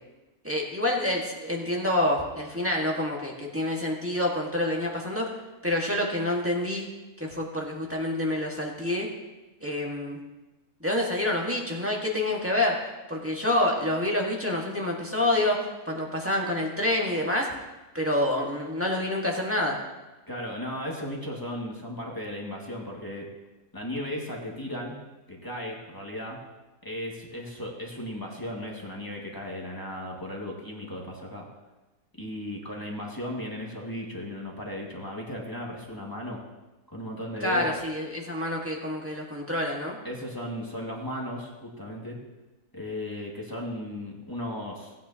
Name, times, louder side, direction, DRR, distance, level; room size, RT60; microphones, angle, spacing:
voice 1, 0.4-5.3 5.6-6.9 7.2-9.1 9.6-10.2 10.8-17.5 17.9-19.8 37.4-40.0, left 1 dB, 10° right, -2 dB, 1.6 m, -27 dB
voice 2, 20.3-23.3 23.7-25.0 25.3-26.4 26.8-31.5 32.2-36.4 36.9-37.7 40.0-42.2 42.7-44.9, left 1 dB, 15° left, -2 dB, 1.9 m, -36 dB
18.5 x 9.4 x 2.9 m, 1.1 s
omnidirectional pair, 1.5 m